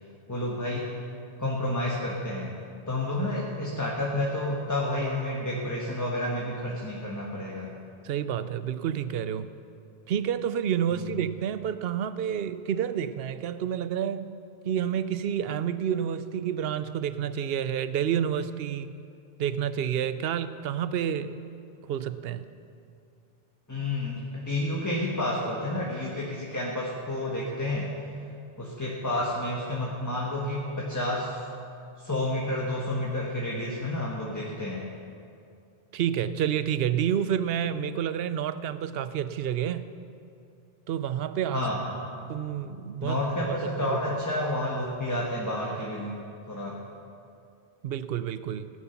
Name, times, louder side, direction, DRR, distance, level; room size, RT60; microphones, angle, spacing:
voice 1, 0.3-0.9 1.4-2.6 2.9-7.8 11.0-11.1 23.7-27.9 28.6-31.4 32.0-34.9 41.5-41.9 43.0-46.1 46.5-46.8, left 1 dB, 15° left, -3 dB, 1.4 m, -30 dB
voice 2, 8.0-9.5 10.1-14.3 14.6-19.0 19.4-21.4 21.9-22.5 35.9-39.9 40.9-41.7 42.3-43.2 43.5-44.0 47.8-48.7, right 9 dB, 70° right, 13 dB, 0.8 m, -29 dB
16.5 x 10.0 x 5.8 m, 2.5 s
omnidirectional pair, 1.1 m